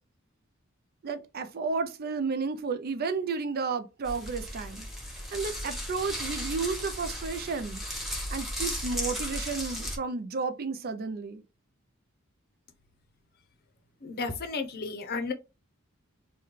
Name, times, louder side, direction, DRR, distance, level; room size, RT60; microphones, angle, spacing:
voice 1, 1.0-4.9 5.3-7.8 8.3-11.4, right 4 dB, 45° right, 0.4 m, -32 dB
sound 1, 4.0-10.0, equal, ahead, 0.9 m, -35 dB
voice 2, 14.0-15.3, left 4 dB, 50° left, 0.6 m, -33 dB
3.1 x 2.2 x 3.5 m
head